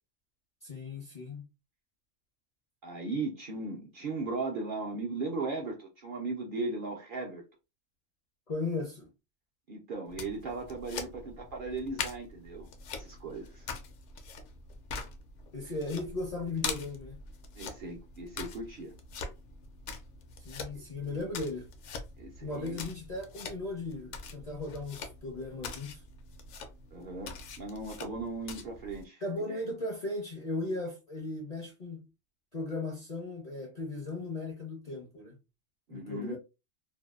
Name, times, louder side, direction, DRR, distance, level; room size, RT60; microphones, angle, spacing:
voice 1, 0.6-1.4 8.5-9.1 15.5-17.2 20.4-21.7 22.4-26.0 29.2-32.0 32.5-35.4 35.9-36.4, left 2 dB, 45° left, 0.5 m, -37 dB
voice 2, 2.8-7.4 9.7-13.7 17.5-18.9 21.0-21.2 22.2-22.9 26.9-29.6 35.9-36.4, right 3 dB, 55° right, 0.6 m, -37 dB
sound 1, 10.1-29.0, left 5 dB, 70° left, 0.8 m, -43 dB
2.6 x 2.1 x 2.2 m
omnidirectional pair, 1.3 m